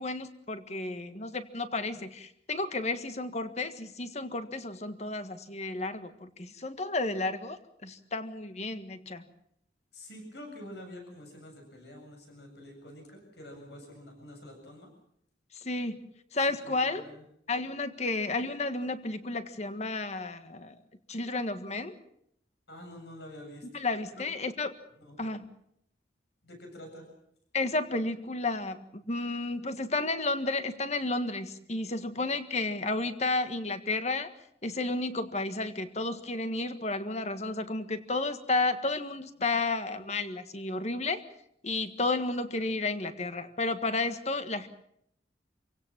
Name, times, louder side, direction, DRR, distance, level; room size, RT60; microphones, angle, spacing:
voice 1, 0.0-9.3 15.5-16.0 16.3-17.0 17.5-20.8 21.1-21.9 23.7-24.8 25.2-25.5 27.5-34.3 34.6-41.2 41.6-44.7, left 2 dB, 40° left, 9 dB, 1.6 m, -32 dB
voice 2, 9.9-14.9 16.5-17.2 22.7-23.7 24.1-24.2 24.9-25.2 26.4-27.1, left 1 dB, 70° left, 3 dB, 7.8 m, -47 dB
27.5 x 17.0 x 7.4 m, 0.73 s
head